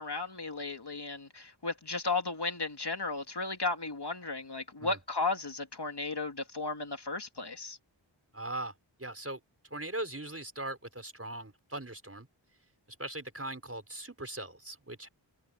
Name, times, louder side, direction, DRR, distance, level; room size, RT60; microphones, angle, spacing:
voice 1, 0.0-7.8, left 3 dB, 60° left, 2.7 m, -34 dB
voice 2, 8.3-8.7 9.0-9.4 9.7-12.3 13.0-15.1, right 1 dB, 30° right, 5.2 m, -40 dB
wide cardioid pair, 55°, 46 cm